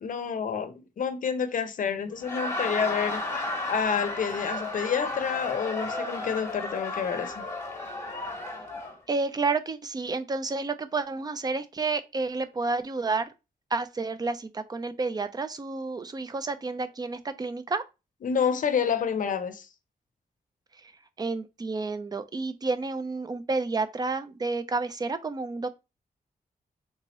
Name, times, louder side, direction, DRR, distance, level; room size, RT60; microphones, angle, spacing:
voice 1, 0.0-3.2 3.7-7.5 18.2-19.7, left 7 dB, 60° left, 0.6 m, -28 dB
Laughter, 2.1-9.0, left 2 dB, 20° left, 1.0 m, -33 dB
voice 2, 9.1-13.3 13.7-17.8 20.8-20.9 21.2-25.7, right 3 dB, 25° right, 0.4 m, -30 dB
3.5 x 2.8 x 2.9 m
wide cardioid pair, 125°, 15 cm